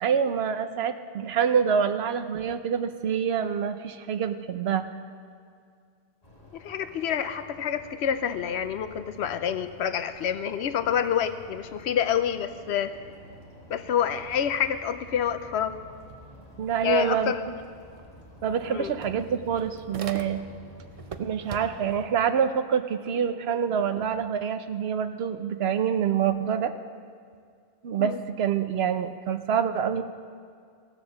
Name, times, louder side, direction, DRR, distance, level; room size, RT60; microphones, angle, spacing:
voice 1, 0.0-4.9 16.6-17.3 18.4-20.4 21.2-26.7 27.8-30.0, right 7 dB, 75° right, 10 dB, 1.0 m, -26 dB
sound 1, 6.2-22.1, left 1 dB, 35° left, 2.1 m, -49 dB
voice 2, 6.5-12.9 13.7-15.8 16.8-17.4 18.7-18.9 28.0-28.2, left 8 dB, 85° left, 11 dB, 0.9 m, -27 dB
sound 2, 18.0-18.1 18.4-20.6 21.0-22.0, right 6 dB, 45° right, 0.5 m, -41 dB
16.5 x 7.1 x 7.1 m, 2.2 s
omnidirectional pair, 1.1 m